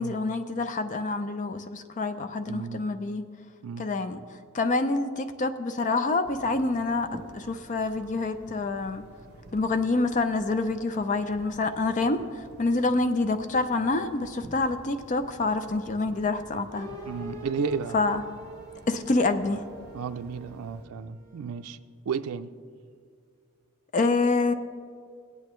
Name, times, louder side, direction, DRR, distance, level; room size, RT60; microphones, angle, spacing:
voice 1, 0.0-3.2 3.8-4.2 4.5-7.1 7.3-9.0 9.5-16.9 17.9-18.2 18.9-19.6 23.9-24.5, left 3 dB, 35° left, 9 dB, 0.4 m, -27 dB
voice 2, 2.5-2.8 3.6-3.9 17.1-17.9 19.9-21.8 22.1-22.5, right 6 dB, 80° right, 9 dB, 0.4 m, -33 dB
sound 1, 6.2-20.9, right 1 dB, 50° right, 1.0 m, -50 dB
sound 2, 16.7-21.7, equal, 20° left, 1.7 m, -44 dB
18.0 x 8.6 x 3.1 m, 2.1 s
head